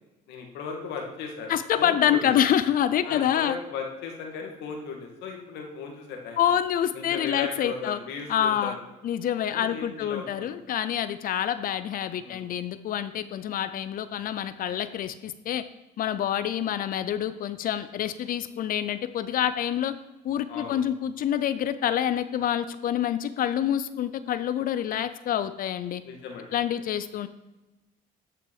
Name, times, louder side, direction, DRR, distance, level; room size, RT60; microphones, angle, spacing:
voice 1, 0.3-2.4 3.0-6.4 6.9-8.8 9.5-10.5 12.2-12.5 20.5-20.8 26.0-26.5, left 5 dB, 85° left, 2 dB, 2.2 m, -36 dB
voice 2, 1.5-3.6 6.4-8.0 8.3-8.8 9.0-15.6 16.0-19.9 20.2-26.0 26.5-27.3, left 10 dB, 55° left, 12 dB, 0.6 m, -27 dB
13.0 x 6.0 x 4.8 m, 1.1 s
cardioid pair, 110°, 17 cm